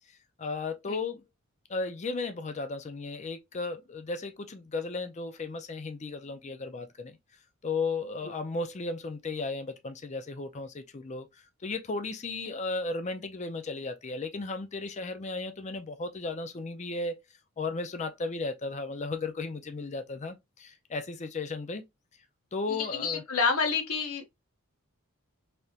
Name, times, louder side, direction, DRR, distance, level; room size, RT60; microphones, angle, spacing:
voice 1, 0.4-1.2 1.7-7.2 7.6-11.3 11.6-17.2 17.6-21.8 22.5-23.2, left 3 dB, 30° left, 0.5 m, -35 dB
voice 2, 22.8-24.3, left 5 dB, 75° left, 0.9 m, -28 dB
3.4 x 2.9 x 2.8 m
head